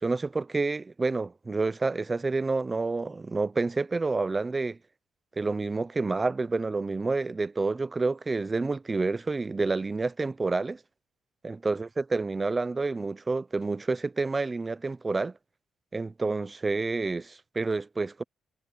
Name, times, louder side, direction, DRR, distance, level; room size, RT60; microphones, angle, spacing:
voice 1, 0.0-4.8 5.4-10.8 11.4-15.3 15.9-18.2, right 3 dB, 25° right, 0.6 m, -29 dB
cardioid pair, 90°, 0 cm